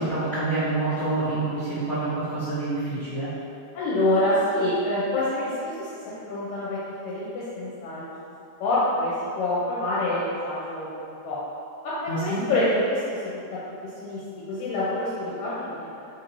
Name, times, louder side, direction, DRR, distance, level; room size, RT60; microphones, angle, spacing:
voice 1, 0.0-3.3 12.1-12.4, right 2 dB, 50° left, -18 dB, 0.7 m, -27 dB
voice 2, 3.7-6.8 7.0-8.0 8.6-11.4 11.8-13.4 14.0-14.2 14.5-16.0, left 1 dB, 80° left, -8 dB, 1.9 m, -26 dB
4.4 x 2.6 x 3.0 m, 2.6 s
omnidirectional pair, 3.3 m